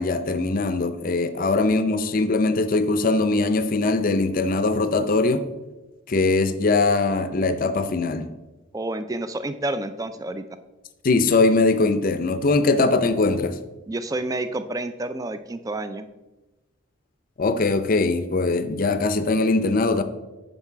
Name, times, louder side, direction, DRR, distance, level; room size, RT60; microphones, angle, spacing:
voice 1, 0.0-5.5 6.1-8.3 11.0-13.5 17.4-20.0, left 3 dB, 45° left, 11 dB, 0.5 m, -21 dB
voice 2, 8.7-10.5 13.9-16.1, right 2 dB, 15° right, 11 dB, 0.3 m, -29 dB
9.5 x 4.0 x 4.6 m, 1.1 s
head